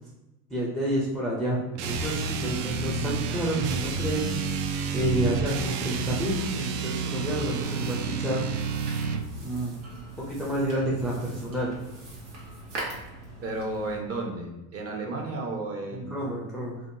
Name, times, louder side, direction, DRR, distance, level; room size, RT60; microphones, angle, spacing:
voice 1, 0.5-4.2 4.9-8.4 9.4-9.8 10.2-11.8 15.9-16.8, right 1 dB, ahead, -5 dB, 0.3 m, -29 dB
sound 1, 1.8-9.3, right 5 dB, 65° right, 0.5 m, -30 dB
sound 2, 7.6-14.0, right 2 dB, 85° right, 1.2 m, -41 dB
voice 2, 13.4-16.2, right 2 dB, 30° right, 1 dB, 0.7 m, -33 dB
3.5 x 2.2 x 2.6 m, 1.0 s
supercardioid pair, 110°, 47 cm